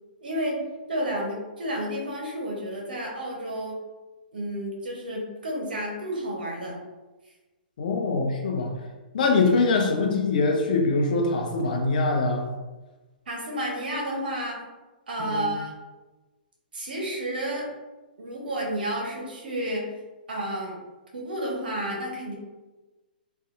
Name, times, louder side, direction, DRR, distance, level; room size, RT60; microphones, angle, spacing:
voice 1, 0.2-0.6 0.9-3.8 4.3-6.8 13.3-14.6 15.1-15.7 16.7-17.7 18.2-19.9 20.3-20.8 21.1-22.3, right 1 dB, 70° right, -1 dB, 0.8 m, -31 dB
voice 2, 7.8-8.7 9.1-12.5 15.2-15.5, left 3 dB, 55° left, 3 dB, 0.5 m, -23 dB
2.6 x 2.3 x 2.4 m, 1.2 s
figure-of-eight pair, 115°, 5 cm